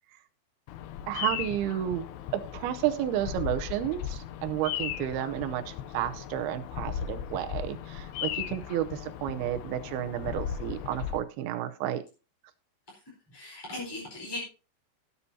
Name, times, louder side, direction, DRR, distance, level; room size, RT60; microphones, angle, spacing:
Bird vocalization bird call bird song, 0.7-11.2, left 10 dB, 80° left, 2.7 m, -37 dB
voice 1, 1.1-2.1 2.3-12.0, right 11 dB, 75° right, 8 dB, 2.4 m, -31 dB
voice 2, 13.3-14.4, left 2 dB, 5° left, -5 dB, 3.8 m, -38 dB
18.0 x 8.5 x 2.8 m, 0.34 s
omnidirectional pair, 5.1 m